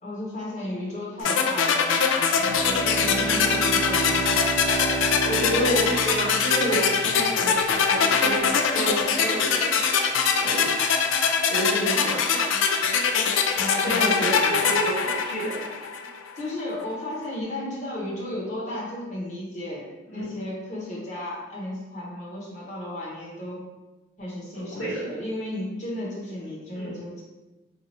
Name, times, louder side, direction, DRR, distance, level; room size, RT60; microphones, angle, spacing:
voice 1, 0.0-1.8 3.1-4.7 13.5-14.7 16.4-23.6 24.2-27.2, left 1 dB, 35° left, -5 dB, 0.9 m, -34 dB
sound 1, 1.2-16.2, left 6 dB, 80° left, 0.3 m, -23 dB
Bowed string instrument, 2.3-7.4, right 3 dB, 10° right, 0.6 m, -31 dB
voice 2, 2.9-3.9 5.2-9.8 10.4-10.8 11.5-12.4 13.8-15.7 20.1-20.3 24.5-25.1 26.7-26.9, right 1 dB, 65° left, -12 dB, 1.0 m, -29 dB
2.8 x 2.4 x 4.1 m, 1.1 s
head